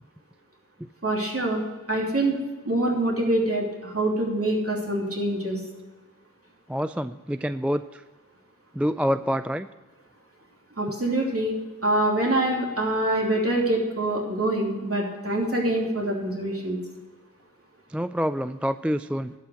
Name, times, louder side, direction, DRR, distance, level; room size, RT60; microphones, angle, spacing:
voice 1, 1.0-1.6 1.9-2.4 2.6-5.6 10.8-11.5 11.8-16.8, right 1 dB, 45° right, -2 dB, 3.0 m, -25 dB
voice 2, 6.7-8.0 8.7-9.7 17.9-19.3, equal, 5° right, 12 dB, 0.3 m, -27 dB
11.5 x 5.8 x 7.7 m, 1.3 s
wide cardioid pair, 40°, 33 cm